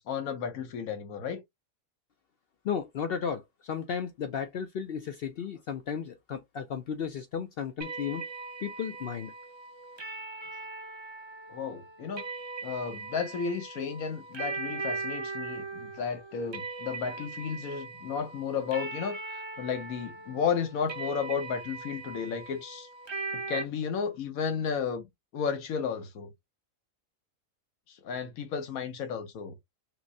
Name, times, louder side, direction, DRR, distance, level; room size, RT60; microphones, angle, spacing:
voice 1, 0.0-1.4 11.5-12.3 12.6-22.9 23.3-25.0 25.3-26.3 27.9-29.5, left 6 dB, 80° left, 1.3 m, -33 dB
voice 2, 2.6-8.2 8.6-9.3, left 7 dB, 65° left, 0.6 m, -34 dB
sound 1, 7.8-23.6, right 3 dB, 30° right, 0.5 m, -40 dB
5.7 x 2.1 x 2.6 m
omnidirectional pair, 1.4 m